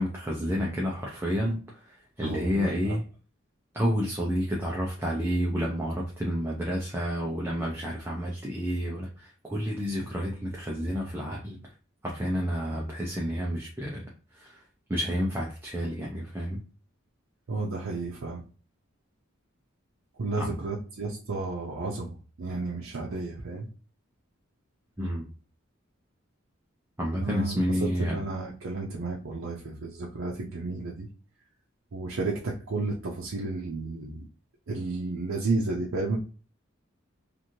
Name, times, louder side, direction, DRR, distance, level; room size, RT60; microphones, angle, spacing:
voice 1, 0.0-3.0 3.7-11.6 12.0-14.1 14.3-14.6 14.9-16.6 20.4-20.5 25.0-25.3 27.0-28.2, equal, 10° right, -3 dB, 0.5 m, -30 dB
voice 2, 2.2-3.0 17.5-18.4 20.2-23.7 27.2-31.1 31.9-34.2 34.7-36.2, right 3 dB, 75° right, -3 dB, 0.6 m, -32 dB
3.0 x 2.5 x 2.6 m, 0.37 s
head